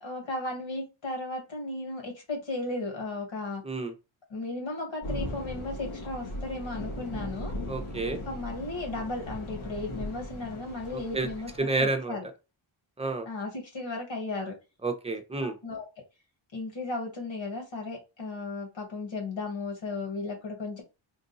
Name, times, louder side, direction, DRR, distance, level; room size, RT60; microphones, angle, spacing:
voice 1, 0.0-3.6 4.3-7.5 8.3-11.5 11.8-12.3 13.3-14.5 15.4-15.8 16.5-20.8, left 2 dB, 70° left, 1.9 m, -35 dB
sound 1, 5.0-11.6, left 1 dB, 85° left, 1.7 m, -38 dB
voice 2, 7.7-8.2 10.9-11.3 11.6-12.2 13.0-13.3 14.8-15.6, right 3 dB, 15° right, 0.8 m, -30 dB
3.9 x 2.5 x 4.0 m
wide cardioid pair, 125°, 48 cm